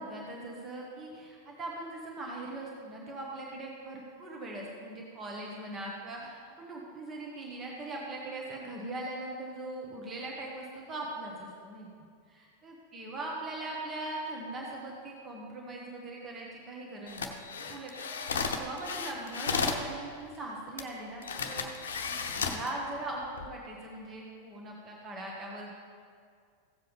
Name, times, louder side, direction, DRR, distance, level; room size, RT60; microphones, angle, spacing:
voice 1, 0.0-11.9 12.3-21.9 22.3-25.7, right 2 dB, 25° right, -2 dB, 1.5 m, -40 dB
sound 1, 17.1-19.9 20.8-20.9 21.2-22.7 23.2-23.5, left 5 dB, 65° left, 0.8 m, -33 dB
15.5 x 7.6 x 3.6 m, 2.2 s
figure-of-eight pair, 90°, 0 cm